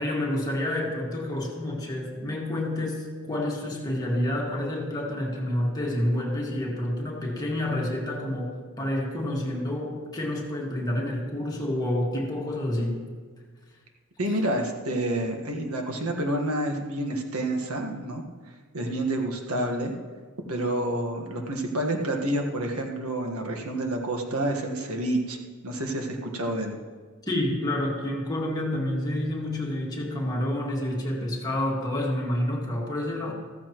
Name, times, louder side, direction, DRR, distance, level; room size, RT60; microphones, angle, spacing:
voice 1, 0.0-13.0 27.3-33.3, left 1 dB, 20° left, -2 dB, 2.0 m, -29 dB
voice 2, 14.2-18.2 18.7-19.9 20.5-25.4 25.6-26.7, right 1 dB, 90° right, 3 dB, 1.6 m, -28 dB
14.5 x 14.0 x 3.1 m, 1.5 s
head